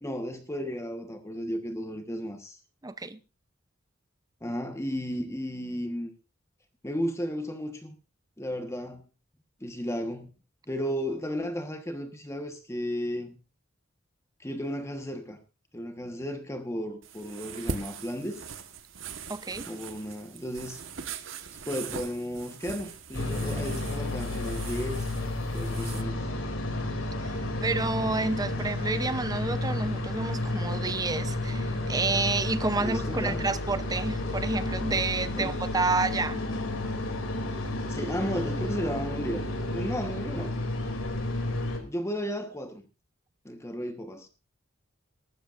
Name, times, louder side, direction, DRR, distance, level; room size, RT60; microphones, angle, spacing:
voice 1, 0.0-2.6 4.4-6.1 6.8-7.9 8.4-9.0 9.6-10.3 10.7-13.3 14.4-15.4 15.7-18.4 19.7-20.8 21.7-25.1 25.5-26.3 32.7-33.4 35.4-35.6 37.9-40.5 41.8-42.8 43.4-44.3, equal, 15° left, 1.3 m, -34 dB
voice 2, 2.8-3.2 19.3-19.7 27.2-27.4 27.6-36.4, right 3 dB, 20° right, 0.7 m, -29 dB
sound 1, 17.0-26.0, right 5 dB, 70° right, 1.4 m, -41 dB
sound 2, 23.1-41.8, left 2 dB, 80° left, 2.8 m, -31 dB
23.0 x 13.0 x 2.6 m
head